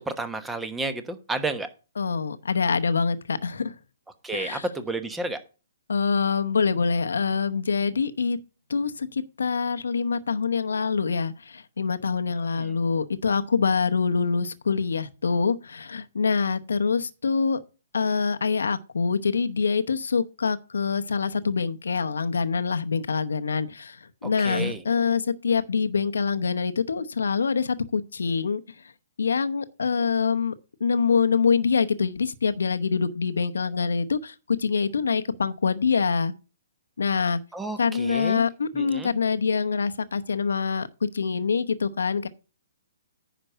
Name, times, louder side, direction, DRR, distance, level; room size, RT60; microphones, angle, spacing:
voice 1, 0.0-1.7 4.2-5.4 12.5-12.8 24.2-24.8 37.5-38.4 38.7-39.1, right 2 dB, 10° right, 1.1 m, -31 dB
voice 2, 2.0-3.7 4.3-4.6 5.9-8.4 8.7-17.6 17.9-28.6 29.2-30.5 30.8-36.3 37.0-37.4 37.8-42.3, left 5 dB, 75° left, 0.9 m, -25 dB
10.0 x 5.1 x 5.7 m
figure-of-eight pair, 130°, 0 cm